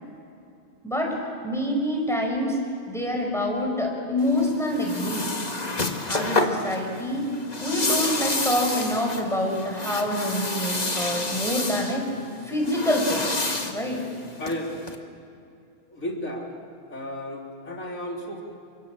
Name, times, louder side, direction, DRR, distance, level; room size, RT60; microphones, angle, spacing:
voice 1, 0.8-1.1 1.4-2.6 2.9-5.3 6.1-7.3 7.6-12.1 12.4-13.3 13.7-14.0, left 1 dB, ahead, -1 dB, 6.2 m, -26 dB
sound 1, 4.2-14.9, left 2 dB, 30° left, 1.8 m, -30 dB
voice 2, 14.4-14.9 15.8-16.5 16.9-18.4, left 1 dB, 90° left, 0 dB, 4.0 m, -33 dB
30.0 x 25.5 x 7.6 m, 2.5 s
omnidirectional pair, 1.4 m